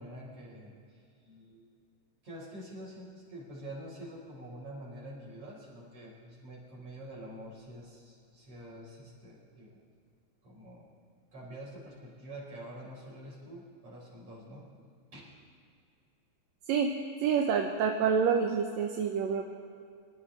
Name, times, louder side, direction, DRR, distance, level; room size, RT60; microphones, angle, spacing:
voice 1, 0.0-1.7 2.2-9.8 10.4-10.9 11.3-14.7 15.1-15.2, right 1 dB, 55° right, -5 dB, 5.2 m, -47 dB
voice 2, 17.2-19.5, right 6 dB, 75° right, 2 dB, 2.0 m, -27 dB
24.5 x 12.5 x 3.3 m, 2.3 s
omnidirectional pair, 3.3 m